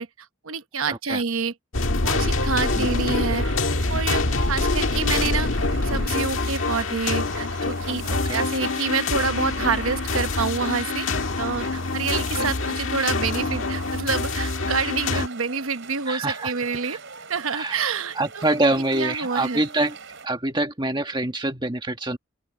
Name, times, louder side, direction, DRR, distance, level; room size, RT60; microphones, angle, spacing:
voice 1, 0.0-3.5 3.9-5.5 5.8-11.1 11.4-17.0 17.3-19.6, right 5 dB, 75° right, 1.0 m, -28 dB
voice 2, 0.9-1.2 2.8-2.9 8.0-8.4 12.3-12.5 15.1-15.2 16.1-16.5 16.9-17.0 17.5-17.8 18.1-19.9 20.2-22.2, right 2 dB, 20° right, 1.7 m, -25 dB
sound 1, 1.7-15.3, left 3 dB, 70° left, 1.7 m, -25 dB
sound 2, 2.2-20.3, right 5 dB, 60° right, 4.8 m, -43 dB
open air
head